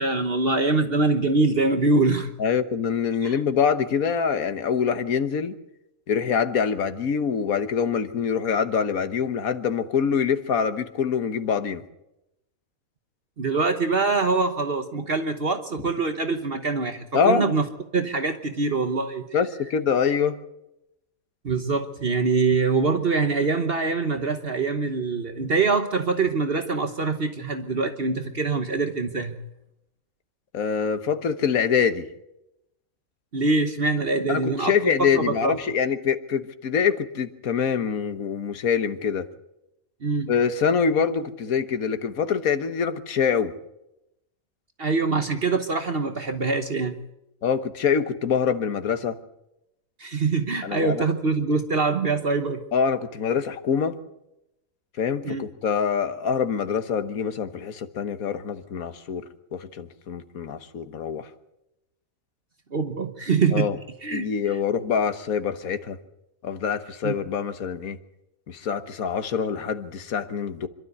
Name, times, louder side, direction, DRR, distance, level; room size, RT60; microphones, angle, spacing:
voice 1, 0.0-2.3 3.2-3.3 13.4-17.7 17.9-19.3 21.4-29.4 33.3-35.6 40.0-40.3 44.8-46.9 50.0-52.6 55.2-55.4 62.7-63.7 64.0-64.6 67.0-67.1, right 3 dB, 45° right, 7 dB, 1.3 m, -24 dB
voice 2, 2.4-5.5 6.1-11.8 17.1-17.5 19.3-20.4 30.5-32.1 34.3-39.3 40.3-43.5 47.4-49.2 50.6-51.0 52.7-53.9 55.0-59.2 59.5-61.2 63.5-63.8 64.1-66.0 66.4-68.0 68.5-70.7, left 6 dB, 85° left, 10 dB, 1.6 m, -25 dB
26.0 x 12.5 x 8.1 m, 0.87 s
omnidirectional pair, 1.4 m